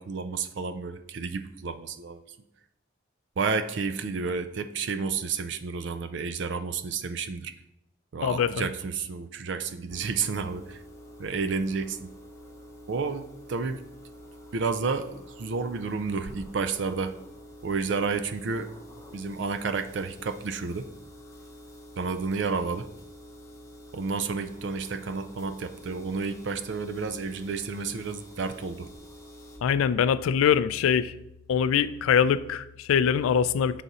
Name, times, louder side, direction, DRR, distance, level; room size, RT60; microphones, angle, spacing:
voice 1, 0.0-2.2 3.4-7.5 8.1-10.8 11.2-12.1 12.9-13.8 14.5-17.1 17.6-18.7 19.1-20.9 22.0-22.9 23.9-28.9, right 4 dB, 60° right, 10 dB, 0.4 m, -31 dB
voice 2, 8.2-8.6 29.6-31.1 31.5-33.8, left 8 dB, 90° left, 15 dB, 0.3 m, -23 dB
sound 1, 9.9-29.6, equal, 15° left, 0.7 m, -48 dB
6.1 x 4.0 x 4.0 m, 0.85 s
head